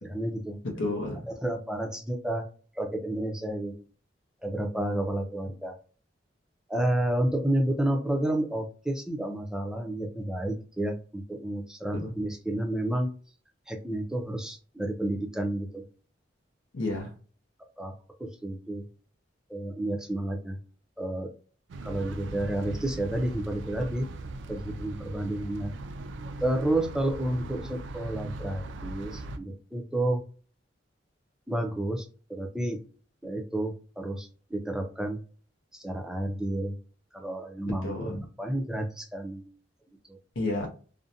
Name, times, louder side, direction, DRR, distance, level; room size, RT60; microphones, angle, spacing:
voice 1, 0.0-0.6 1.3-2.5 2.8-3.8 4.4-5.8 6.7-13.1 13.7-15.8 17.8-17.9 18.2-18.9 19.5-20.6 21.0-21.3 21.8-24.1 24.5-25.7 26.4-30.2 31.5-32.8 33.2-35.2 35.7-36.8 37.1-39.5, right 1 dB, 5° right, 0.4 m, -30 dB
voice 2, 0.6-1.3 11.9-12.1 16.7-17.1 37.8-38.2 40.4-40.7, left 2 dB, 80° left, 0.6 m, -31 dB
sound 1, 21.7-29.4, right 2 dB, 65° right, 0.3 m, -39 dB
2.5 x 2.1 x 2.6 m
head